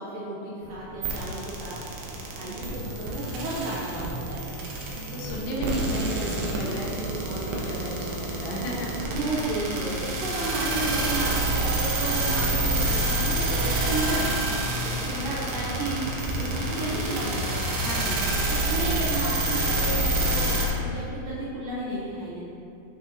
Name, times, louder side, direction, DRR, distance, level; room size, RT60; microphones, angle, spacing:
voice 1, 0.0-1.8 2.3-4.5 9.1-14.4 14.8-17.6 18.4-22.5, right 1 dB, 70° right, -7 dB, 2.1 m, -33 dB
sound 1, 0.6-18.0, equal, 55° left, 2.7 m, -38 dB
sound 2, 1.0-20.7, right 2 dB, 90° right, 1.7 m, -28 dB
voice 2, 4.9-9.4 15.3-15.4 17.8-18.5, equal, 85° left, -3 dB, 3.5 m, -34 dB
9.6 x 6.0 x 3.0 m, 2.7 s
omnidirectional pair, 4.9 m